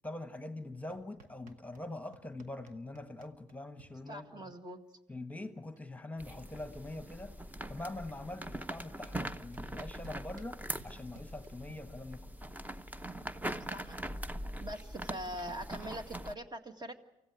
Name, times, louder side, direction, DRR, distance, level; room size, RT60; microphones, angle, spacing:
voice 1, 0.0-4.5 5.1-7.4 7.7-12.3, left 2 dB, 10° left, 1.3 m, -44 dB
sound 1, 0.9-1.9 2.1-3.9 5.2-5.3 5.5-5.9 6.2-7.6 8.4-8.5 9.0-11.7, right 4 dB, 85° right, 1.2 m, -58 dB
voice 2, 4.1-4.8 13.7-14.0 14.6-16.9, equal, 30° right, 1.9 m, -42 dB
sound 2, 6.2-16.3, right 1 dB, 10° right, 0.9 m, -42 dB
24.5 x 15.0 x 8.6 m
supercardioid pair, 65°, 14 cm